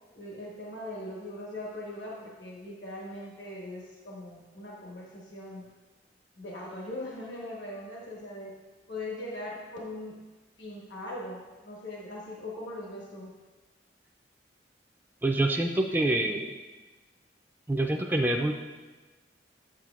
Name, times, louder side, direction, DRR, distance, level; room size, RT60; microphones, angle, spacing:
voice 1, 0.1-5.7 6.4-8.5 8.9-10.1 10.6-13.3, left 1 dB, 75° left, -3 dB, 1.2 m, -40 dB
voice 2, 15.2-16.6 17.7-18.5, right 1 dB, 10° right, 1 dB, 0.3 m, -26 dB
8.4 x 7.4 x 2.4 m, 1.2 s
head